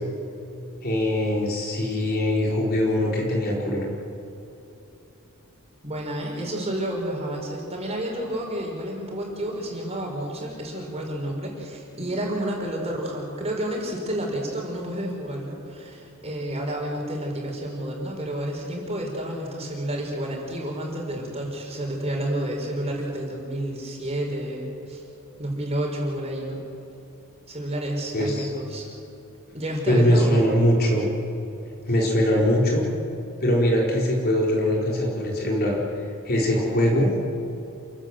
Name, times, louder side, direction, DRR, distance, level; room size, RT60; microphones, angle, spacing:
voice 1, 0.8-3.8 28.1-28.5 29.9-31.1 31.9-32.8 33.4-35.8 36.2-37.1, equal, 45° left, -2 dB, 4.5 m, -22 dB
voice 2, 5.8-25.0 25.4-26.6 27.5-28.9 29.5-31.0, right 1 dB, 30° right, -1 dB, 5.1 m, -30 dB
28.5 x 16.0 x 7.7 m, 2.9 s
head